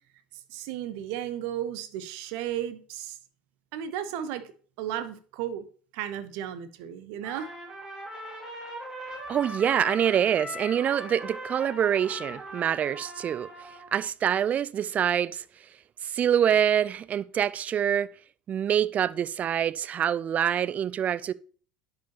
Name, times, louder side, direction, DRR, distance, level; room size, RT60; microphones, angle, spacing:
voice 1, 0.5-3.2 3.7-4.4 4.8-5.7 5.9-7.5, right 10 dB, 60° right, 0.8 m, -34 dB
Trumpet, 7.2-14.0, equal, 15° right, 2.3 m, -40 dB
voice 2, 9.3-13.5 13.9-15.4 16.0-18.1 18.5-21.3, right 9 dB, 35° right, 0.3 m, -25 dB
10.0 x 4.9 x 2.9 m
figure-of-eight pair, 70°, 5 cm